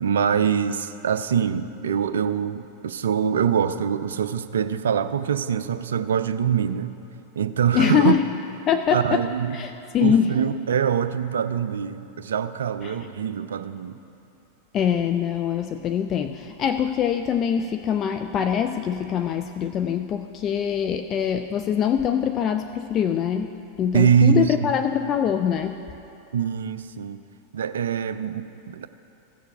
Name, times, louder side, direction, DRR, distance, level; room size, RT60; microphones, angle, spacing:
voice 1, 0.0-7.0 7.4-8.1 8.9-9.6 10.0-14.0 23.9-24.5 26.3-27.2 27.5-28.9, right 7 dB, 65° right, 12 dB, 0.4 m, -24 dB
voice 2, 7.7-8.3 8.7-10.4 12.8-13.1 14.7-25.8, left 8 dB, 30° left, 8 dB, 0.3 m, -24 dB
15.0 x 6.7 x 5.5 m, 2.9 s
figure-of-eight pair, 90°, 0 cm